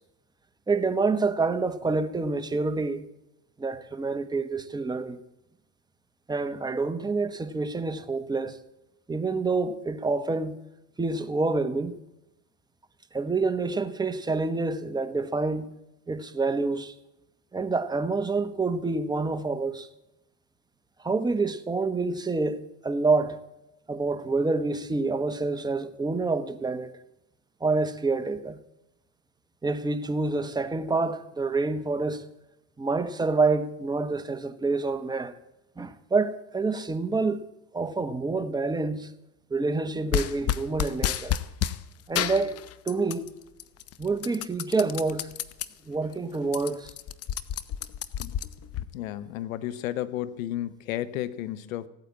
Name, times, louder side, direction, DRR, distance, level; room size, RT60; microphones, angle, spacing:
voice 1, 0.7-3.0 3.6-5.2 6.3-8.6 9.1-10.6 11.0-12.0 13.1-15.7 16.1-16.9 17.5-19.9 21.0-23.4 23.9-27.0 27.6-28.6 29.6-32.2 32.8-35.3 35.8-37.4 37.7-39.1 39.5-41.4 42.1-42.6 42.8-43.3 44.0-45.3 45.8-46.9, right 3 dB, 10° right, 1.2 m, -27 dB
sound 1, 40.1-41.8 42.1-43.3 43.6-45.7 46.1-46.2 46.4-48.8, left 11 dB, 35° left, 0.9 m, -30 dB
voice 2, 48.9-51.9, left 13 dB, 85° left, 1.0 m, -32 dB
16.0 x 9.3 x 8.4 m
supercardioid pair, 100°, 40 cm